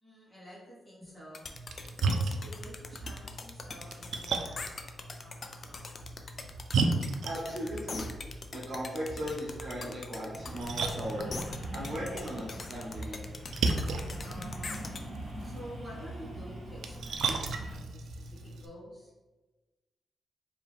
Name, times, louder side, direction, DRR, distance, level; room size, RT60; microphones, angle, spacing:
voice 1, 0.0-1.4 1.9-6.0 14.2-19.1, equal, 15° left, -8 dB, 1.5 m, -50 dB
sound 1, 1.3-15.0, left 4 dB, 35° left, 0.3 m, -42 dB
Splash splatter, 1.5-18.7, right 3 dB, 85° right, 0.4 m, -36 dB
voice 2, 7.2-8.1 8.5-11.3 11.7-13.2, equal, 50° right, -7 dB, 0.9 m, -37 dB
sound 2, 10.3-17.8, right 1 dB, 25° right, 1.2 m, -43 dB
4.6 x 2.8 x 3.2 m, 1.2 s
wide cardioid pair, 175°, 0 cm